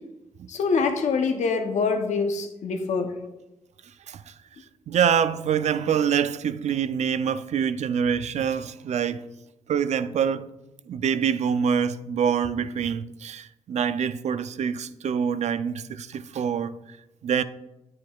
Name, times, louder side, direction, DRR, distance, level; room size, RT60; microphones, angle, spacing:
voice 1, 0.5-3.1, left 4 dB, 80° left, 0.8 m, -25 dB
voice 2, 4.9-9.3 9.7-10.5 10.9-16.8 17.2-17.4, right 7 dB, 70° right, 0.4 m, -25 dB
9.1 x 7.5 x 2.3 m
cardioid pair, 55°, 12 cm